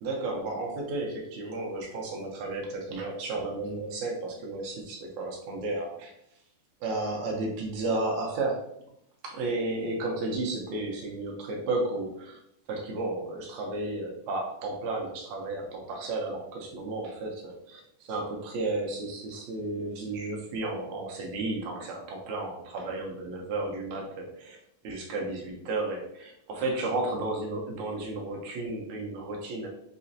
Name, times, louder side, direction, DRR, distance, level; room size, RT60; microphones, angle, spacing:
voice 1, 0.0-6.1 6.8-8.7 9.2-12.4 12.7-17.8 18.1-24.6 24.8-29.7, right 2 dB, 75° right, 0 dB, 1.8 m, -33 dB
5.7 x 3.0 x 2.7 m, 0.77 s
omnidirectional pair, 4.0 m